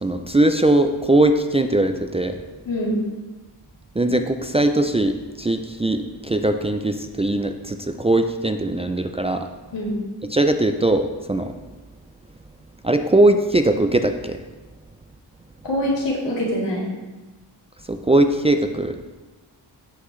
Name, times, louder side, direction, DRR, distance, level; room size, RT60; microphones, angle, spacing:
voice 1, 0.0-2.4 4.0-9.5 10.3-11.5 12.8-14.4 17.9-19.1, right 1 dB, 15° right, 6 dB, 0.3 m, -20 dB
voice 2, 2.6-3.0 9.7-10.0 15.6-16.8, equal, 90° left, -5 dB, 3.3 m, -24 dB
15.5 x 6.0 x 3.2 m, 1.2 s
wide cardioid pair, 150°, 42 cm